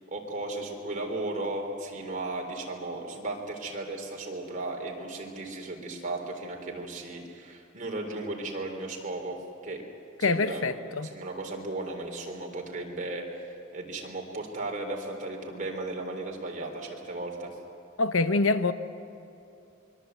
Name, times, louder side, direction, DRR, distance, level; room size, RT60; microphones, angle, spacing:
voice 1, 0.0-9.4 9.6-9.8 10.2-10.7 11.0-13.4 13.7-17.5, right 2 dB, 40° right, 1 dB, 3.6 m, -35 dB
voice 2, 10.2-11.1 18.0-18.7, left 3 dB, 75° left, 11 dB, 0.9 m, -25 dB
25.0 x 22.5 x 8.1 m, 2.7 s
head